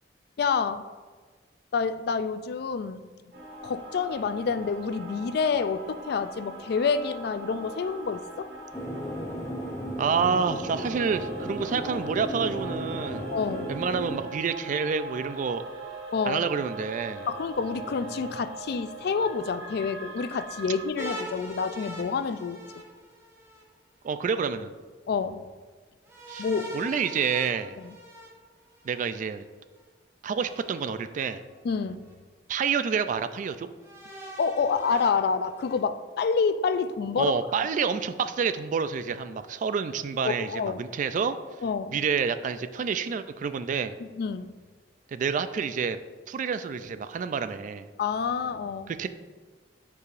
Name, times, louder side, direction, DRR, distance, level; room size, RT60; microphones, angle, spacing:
voice 1, 0.4-0.8 1.7-3.0 3.6-8.5 13.3-13.7 16.1-16.4 17.3-22.6 25.1-25.4 26.4-26.7 27.8-27.9 31.6-32.1 34.4-37.3 40.2-40.8 41.6-42.0 44.0-44.6 48.0-48.9, left 5 dB, 65° left, 0.3 m, -28 dB
sound 1, 3.3-20.9, right 3 dB, 75° right, 1.7 m, -41 dB
sound 2, 8.7-14.2, equal, 15° left, 0.6 m, -35 dB
voice 2, 10.0-13.2 13.7-15.6 16.3-17.3 24.0-24.7 26.3-26.5 26.7-27.8 28.8-29.4 30.2-31.4 32.5-33.7 37.2-41.4 41.9-44.0 45.1-46.0 46.3-47.9 48.9-49.1, right 6 dB, 45° right, 0.3 m, -28 dB
sound 3, 21.0-23.6 26.1-29.1 30.4-31.3 32.1-32.2 33.8-35.8, equal, 15° right, 1.0 m, -42 dB
9.5 x 4.8 x 2.5 m
head